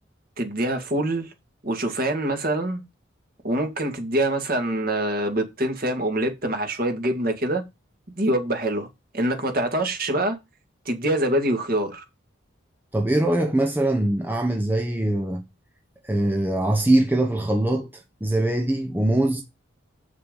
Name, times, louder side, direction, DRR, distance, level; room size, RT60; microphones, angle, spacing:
voice 1, 0.4-1.3 1.6-2.8 3.4-7.6 8.1-8.9 9.1-10.4 10.9-12.0, right 1 dB, 45° right, 2.3 m, -25 dB
voice 2, 12.9-15.4 16.0-17.9 18.2-19.4, right 1 dB, 10° right, 0.9 m, -22 dB
7.9 x 6.6 x 5.3 m
head